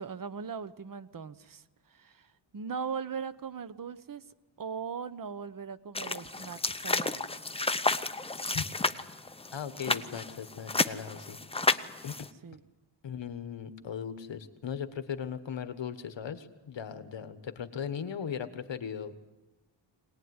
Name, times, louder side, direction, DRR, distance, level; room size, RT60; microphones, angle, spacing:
voice 1, 0.0-4.2 4.6-7.5 12.4-12.6, right 6 dB, 45° right, 14 dB, 1.0 m, -39 dB
sound 1, 5.9-12.3, left 3 dB, 10° left, 0.7 m, -31 dB
voice 2, 9.5-11.4 12.0-12.2 13.0-19.4, left 7 dB, 65° left, 9 dB, 1.5 m, -38 dB
23.5 x 19.0 x 9.7 m, 1.2 s
wide cardioid pair, 125°, 46 cm